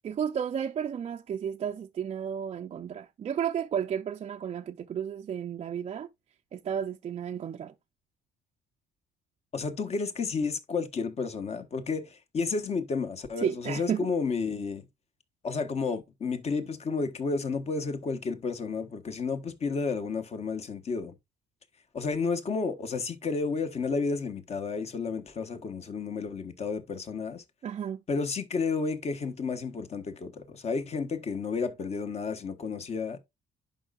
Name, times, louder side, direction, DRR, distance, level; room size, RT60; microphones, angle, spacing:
voice 1, 0.0-6.1 6.5-7.7 13.4-14.1 27.6-28.0, right 8 dB, 35° right, 0.5 m, -32 dB
voice 2, 9.5-14.8 15.4-21.1 21.9-27.4 28.1-33.2, left 4 dB, 40° left, 1.3 m, -31 dB
11.0 x 5.3 x 2.4 m
cardioid pair, 110°, 17 cm